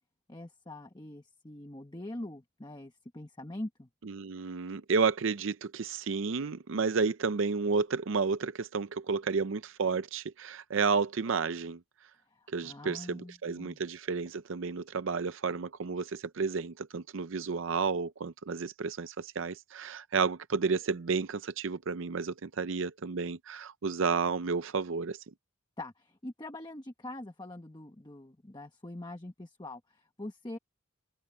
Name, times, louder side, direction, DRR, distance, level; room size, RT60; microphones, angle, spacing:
voice 1, 0.3-3.9 12.3-13.8 25.8-30.6, left 1 dB, 20° left, 1.2 m, -43 dB
voice 2, 4.1-11.8 12.5-25.2, right 5 dB, 60° right, 0.5 m, -31 dB
head